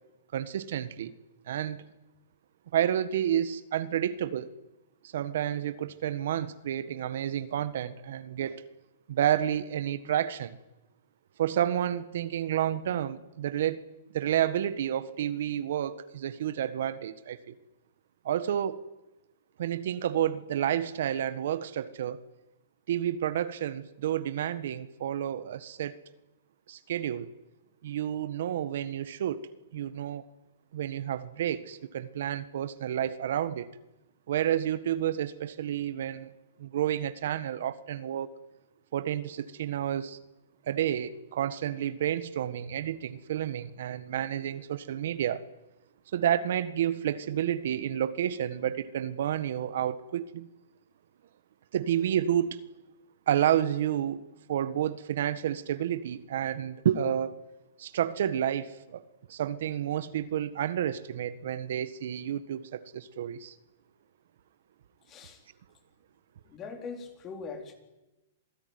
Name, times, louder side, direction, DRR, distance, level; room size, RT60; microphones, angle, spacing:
voice 1, 0.3-1.1 1.5-1.9 2.7-4.5 5.1-8.6 9.1-10.6 11.4-13.8 14.1-17.5 18.2-18.8 19.6-22.2 22.9-26.0 26.7-27.3 27.8-30.2 30.7-33.7 34.3-36.3 36.6-38.3 38.9-40.2 40.7-45.4 46.1-50.5 51.7-52.6 53.3-54.2 54.5-57.4 57.8-59.0 59.3-63.5, right 10 dB, 65° right, 1.5 m, -30 dB
voice 2, 65.1-65.4 66.5-67.7, left 5 dB, 25° left, 4.3 m, -41 dB
27.0 x 18.5 x 9.7 m
hypercardioid pair, 160°, 0 cm